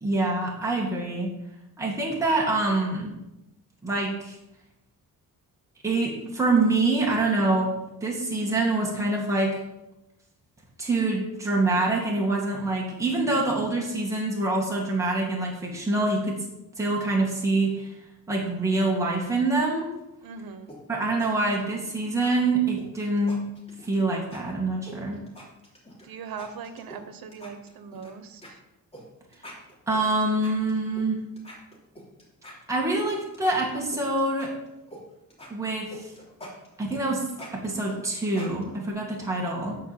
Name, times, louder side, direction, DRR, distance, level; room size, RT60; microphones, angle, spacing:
voice 1, 0.0-1.3 1.8-3.1 3.8-4.4 5.8-7.7 8.0-9.6 10.8-16.4 16.8-17.9 18.3-19.9 20.9-23.4 23.8-25.2 29.9-31.2 32.7-34.5 35.5-36.1 36.8-37.2 37.5-39.8, right 2 dB, 10° right, -3 dB, 2.2 m, -25 dB
voice 2, 20.2-20.7 26.0-28.6, right 6 dB, 80° right, 9 dB, 1.1 m, -40 dB
sound 1, 20.7-21.3 21.6-21.9 22.2-22.3 22.8-24.0 24.3-24.4 24.9-26.1 26.4-27.0 27.3-28.1 28.4-28.5 28.9-29.0 29.3-31.0 31.4-33.1 33.3-35.0 35.3-38.9, equal, 15° left, 3.3 m, -45 dB
10.5 x 4.8 x 7.1 m, 0.90 s
cardioid pair, 135°, 35 cm